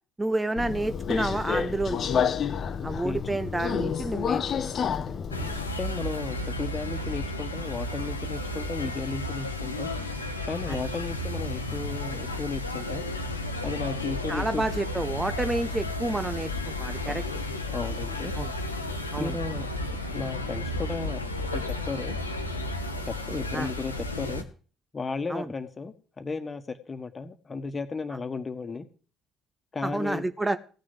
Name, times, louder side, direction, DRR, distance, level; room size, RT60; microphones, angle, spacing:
voice 1, 0.2-2.0 2.8-4.7 10.7-10.8 14.3-17.2 18.3-18.5 19.1-19.3 23.5-23.7 25.3-25.5 29.8-30.6, right 2 dB, 15° right, 11 dB, 0.8 m, -29 dB
Subway metro underground, 0.6-5.7, left 7 dB, 45° left, 0.8 m, -29 dB
voice 2, 3.0-3.4 5.8-9.9 10.4-13.0 13.6-14.6 17.0-17.1 17.7-18.3 19.2-19.7 20.1-22.2 23.0-24.5 24.9-28.9 29.7-30.2, left 4 dB, 25° left, 10 dB, 1.5 m, -34 dB
sound 1, 5.3-24.4, left 1 dB, 85° left, 1.0 m, -33 dB
16.5 x 6.5 x 7.8 m, 0.40 s
figure-of-eight pair, 50°, 0 cm